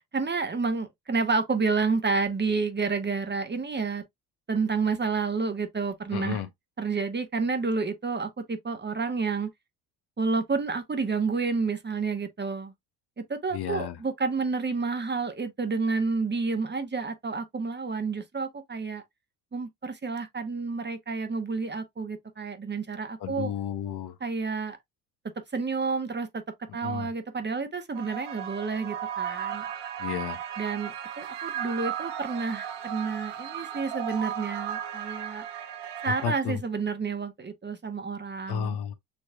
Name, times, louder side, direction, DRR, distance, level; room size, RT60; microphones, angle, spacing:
voice 1, 0.1-4.0 4.5-6.4 6.8-9.5 10.2-12.7 13.3-19.0 19.5-23.5 24.2-24.8 25.5-26.4 26.7-29.6 30.6-35.4 36.0-38.8, right 4 dB, 20° right, 1.1 m, -30 dB
voice 2, 6.1-6.5 13.5-14.0 23.2-24.1 26.8-27.1 30.0-30.4 36.1-36.6 38.5-38.9, left 8 dB, 55° left, 0.9 m, -32 dB
sound 1, 27.9-36.4, right 9 dB, 65° right, 1.1 m, -35 dB
6.7 x 3.0 x 2.3 m
hypercardioid pair, 60°, 46 cm